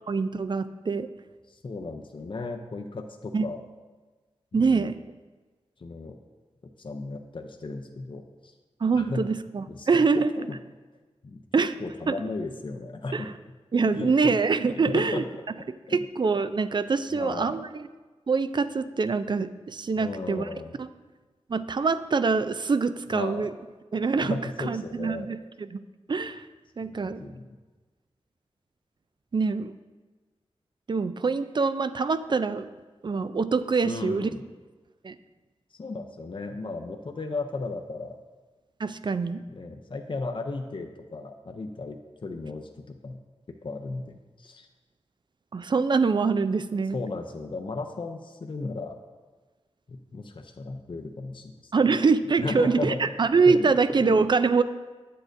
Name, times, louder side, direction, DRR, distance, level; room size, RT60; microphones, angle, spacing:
voice 1, 0.1-1.1 3.3-3.5 4.5-5.0 8.8-10.3 11.5-11.7 12.1-12.2 13.1-13.2 13.7-15.2 15.9-17.9 18.3-20.4 20.8-20.9 21.5-23.5 23.9-25.8 26.1-26.4 26.8-27.3 29.3-29.8 30.9-32.7 33.0-34.3 35.0-35.2 38.8-39.4 45.5-47.0 51.7-54.6, right 4 dB, 45° right, 13 dB, 0.3 m, -24 dB
voice 2, 1.5-3.6 4.5-4.9 5.8-6.2 6.8-8.5 9.0-9.2 9.7-10.6 11.2-11.4 11.8-13.3 13.8-14.3 14.7-15.2 15.9-16.0 17.1-17.5 20.0-20.8 23.1-23.5 24.2-25.3 26.8-27.5 33.8-34.4 35.8-38.2 39.5-43.2 43.6-44.7 46.9-49.0 49.9-51.7 52.4-53.0 53.5-53.7 54.0-54.3, left 3 dB, 50° left, 4 dB, 0.5 m, -35 dB
8.3 x 7.6 x 2.6 m, 1.3 s
wide cardioid pair, 60°, 11 cm